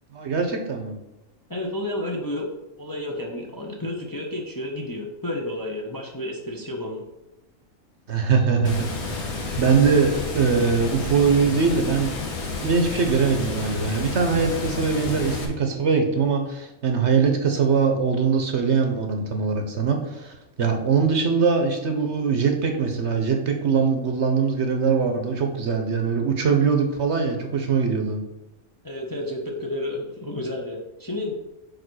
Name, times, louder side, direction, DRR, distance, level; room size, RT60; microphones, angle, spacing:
voice 1, 0.1-0.9 8.1-12.1 12.6-28.2, right 5 dB, 55° right, 4 dB, 1.0 m, -22 dB
voice 2, 1.5-2.5 2.8-7.0 28.8-31.3, left 1 dB, 20° left, -1 dB, 0.7 m, -31 dB
Water, 8.6-15.4, left 3 dB, 85° left, 1.6 m, -30 dB
5.0 x 4.6 x 6.2 m, 0.94 s
omnidirectional pair, 1.5 m